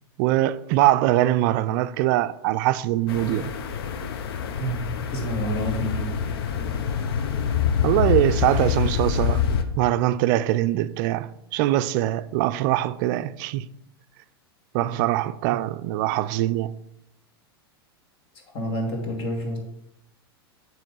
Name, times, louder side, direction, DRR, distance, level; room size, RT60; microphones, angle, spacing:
voice 1, 0.2-3.5 7.8-9.4 9.8-13.7 14.7-16.8, right 14 dB, 55° right, 0.4 m, -23 dB
sound 1, 3.1-9.6, left 7 dB, 70° left, 0.7 m, -26 dB
voice 2, 4.6-6.1 14.8-14.9 18.5-19.6, equal, 45° left, 2.0 m, -29 dB
7.4 x 3.1 x 5.3 m
hypercardioid pair, 105°, 13 cm